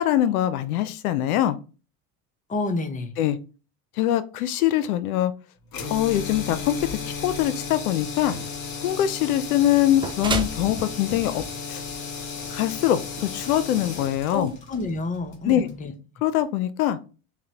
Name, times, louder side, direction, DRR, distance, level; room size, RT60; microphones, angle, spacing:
voice 1, 0.0-1.6 3.2-3.4 4.0-5.3 5.9-6.8 7.1-8.4 8.8-11.4 11.7-11.8 12.5-14.5 15.4-15.7 16.2-17.0, left 12 dB, 80° left, 13 dB, 0.5 m, -23 dB
voice 2, 2.5-3.1 14.3-15.9, left 2 dB, 20° left, 7 dB, 0.7 m, -29 dB
sound 1, 5.7-15.8, left 5 dB, 50° left, 1.4 m, -34 dB
sound 2, 9.7-15.0, right 4 dB, 15° right, 0.3 m, -35 dB
5.7 x 2.2 x 2.8 m, 0.34 s
hypercardioid pair, 85°, 43 cm